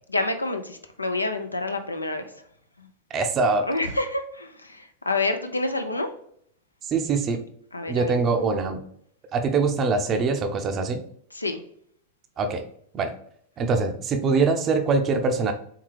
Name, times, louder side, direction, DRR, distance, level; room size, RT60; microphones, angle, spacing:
voice 1, 0.1-2.4 3.7-6.1 7.7-8.5 11.3-11.6, left 2 dB, 85° left, 7 dB, 0.5 m, -28 dB
voice 2, 3.1-3.7 6.8-7.4 7.9-8.8 9.3-11.0 12.4-12.6 12.9-13.1 13.6-15.5, right 4 dB, 30° right, 6 dB, 0.6 m, -23 dB
4.5 x 3.6 x 3.2 m, 0.67 s
figure-of-eight pair, 90°, 0 cm